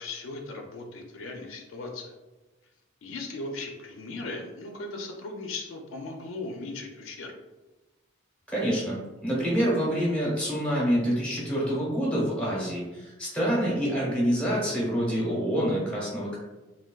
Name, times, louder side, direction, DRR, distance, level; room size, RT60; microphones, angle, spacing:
voice 1, 0.0-2.1 3.0-7.3, left 3 dB, 80° left, 2 dB, 0.4 m, -38 dB
voice 2, 8.5-16.4, equal, 5° left, -5 dB, 0.8 m, -27 dB
3.4 x 2.2 x 2.2 m, 1.1 s
head